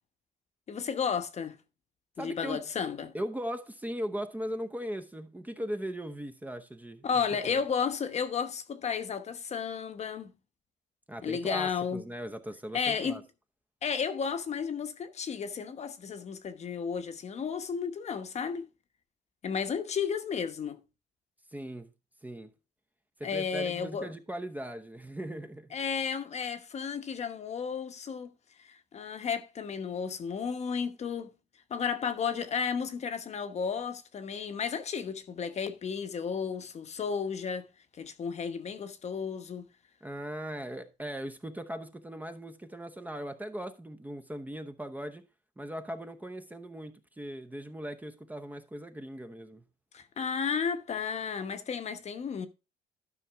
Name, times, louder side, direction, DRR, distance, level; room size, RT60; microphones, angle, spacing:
voice 1, 0.7-1.6 2.2-3.1 7.0-10.3 11.2-12.0 12.7-13.2 13.8-18.7 19.4-20.8 23.2-24.1 25.7-28.3 28.6-31.3 31.7-37.7 38.0-39.6 49.9-52.5, left 6 dB, 40° left, 1.0 m, -33 dB
voice 2, 2.2-2.6 3.1-7.1 7.3-7.6 11.1-13.2 21.5-21.9 22.2-22.5 23.2-25.7 40.0-45.3 45.6-49.6, equal, 10° right, 0.8 m, -39 dB
12.0 x 5.6 x 3.5 m
cardioid pair, 110°, 17 cm